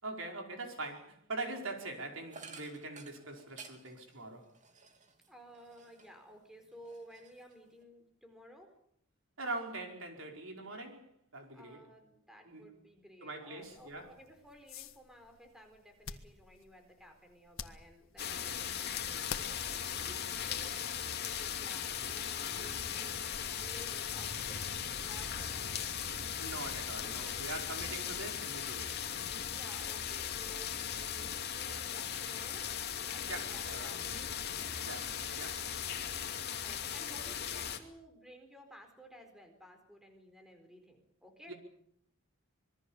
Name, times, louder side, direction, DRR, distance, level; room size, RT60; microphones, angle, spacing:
voice 1, 0.0-4.5 9.4-11.1 11.3-11.8 12.5-12.6 13.2-14.1 26.4-29.0 33.3-33.9 34.8-35.0 35.4-35.6 41.5-41.6, right 2 dB, 65° right, 4.9 m, -42 dB
sound 1, 2.3-6.3 6.7-7.8, right 4 dB, 35° right, 2.7 m, -54 dB
voice 2, 5.3-8.7 11.5-24.6 25.0-26.0 29.4-32.7 33.0-34.8 36.6-41.5, equal, ahead, 4.2 m, -56 dB
sound 2, 13.6-21.0, left 7 dB, 70° left, 1.6 m, -50 dB
sound 3, 18.2-37.8, left 8 dB, 50° left, 2.6 m, -38 dB
26.0 x 22.0 x 7.3 m
head